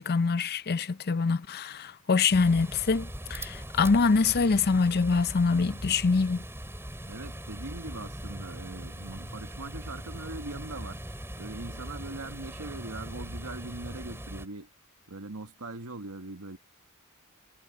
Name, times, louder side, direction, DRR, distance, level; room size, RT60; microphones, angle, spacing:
voice 1, 0.0-6.4, left 4 dB, 45° left, 0.6 m, -25 dB
sound 1, 2.3-14.5, equal, 10° right, 6.1 m, -40 dB
voice 2, 7.1-11.0 11.4-14.7 15.1-16.6, right 2 dB, 90° right, 1.7 m, -41 dB
head